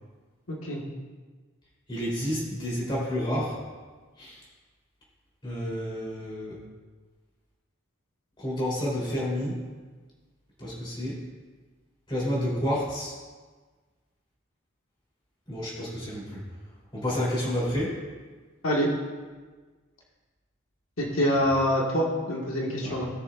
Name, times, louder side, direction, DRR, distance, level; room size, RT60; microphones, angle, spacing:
voice 1, 0.5-0.8 18.6-18.9 21.0-23.1, equal, 90° left, -3 dB, 1.6 m, -25 dB
voice 2, 1.9-3.6 4.2-4.5 5.4-6.6 8.4-9.6 10.6-11.2 12.1-13.1 15.5-16.4 16.9-18.0 22.8-23.0, equal, 25° left, -6 dB, 3.3 m, -30 dB
18.0 x 6.8 x 2.5 m, 1.4 s
head